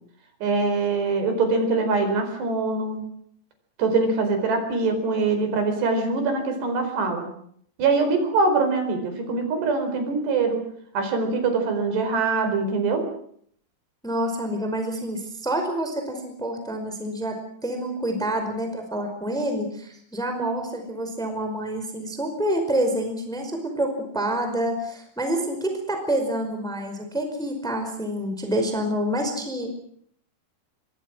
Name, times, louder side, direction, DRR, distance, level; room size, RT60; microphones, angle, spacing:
voice 1, 0.4-3.0 3.8-7.3 7.8-10.6 10.9-13.1, right 3 dB, 65° right, 7 dB, 6.7 m, -23 dB
voice 2, 14.0-29.7, right 1 dB, ahead, 5 dB, 4.3 m, -27 dB
26.5 x 22.5 x 6.3 m, 0.65 s
omnidirectional pair, 5.2 m